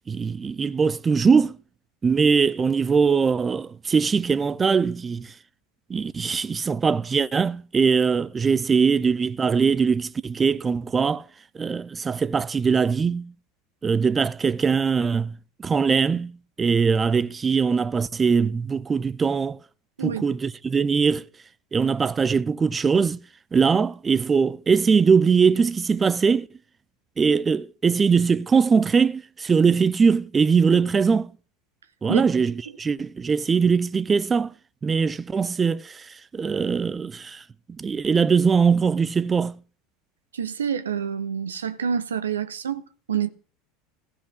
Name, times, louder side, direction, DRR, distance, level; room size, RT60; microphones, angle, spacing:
voice 1, 0.1-1.6 2.0-5.3 5.9-11.2 11.5-13.3 13.8-15.3 15.6-16.3 16.6-19.6 20.0-21.2 21.7-23.2 23.5-26.5 27.2-31.3 32.0-34.5 34.8-36.1 36.3-37.4 37.8-39.5, right 5 dB, 20° right, 0.6 m, -21 dB
voice 2, 40.3-43.3, right 7 dB, 75° right, 0.8 m, -27 dB
15.5 x 5.9 x 9.6 m
figure-of-eight pair, 75°, 0 cm